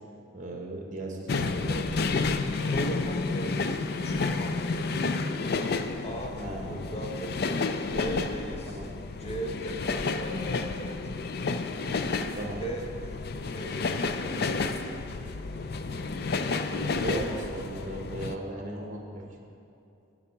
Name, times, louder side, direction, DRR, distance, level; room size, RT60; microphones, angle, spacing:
voice 1, 0.3-1.9 6.3-6.8 8.7-8.9 12.4-12.6 16.7-19.3, right 1 dB, 40° right, 1 dB, 1.2 m, -36 dB
sound 1, 1.3-18.4, left 3 dB, 50° left, 0.4 m, -31 dB
voice 2, 2.5-5.3 6.0-7.5 7.9-8.8 9.2-11.3 12.6-13.2 13.5-15.0, right 1 dB, 30° left, 1 dB, 1.1 m, -39 dB
14.5 x 4.9 x 5.7 m, 2.6 s
head